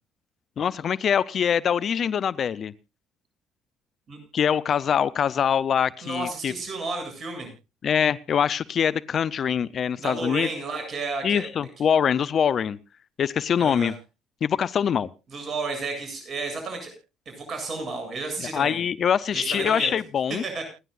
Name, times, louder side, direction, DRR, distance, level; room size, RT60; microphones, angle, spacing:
voice 1, 0.6-2.7 4.3-6.5 7.8-10.5 11.2-12.8 13.2-13.9 14.4-15.1 18.5-20.4, left 8 dB, 55° left, 0.7 m, -24 dB
voice 2, 6.0-7.5 10.0-11.5 13.6-13.9 15.3-16.9 17.3-18.8 19.3-19.9 20.3-20.6, right 3 dB, 50° right, 7.9 m, -32 dB
29.0 x 11.0 x 2.5 m
supercardioid pair, 60°, 0 cm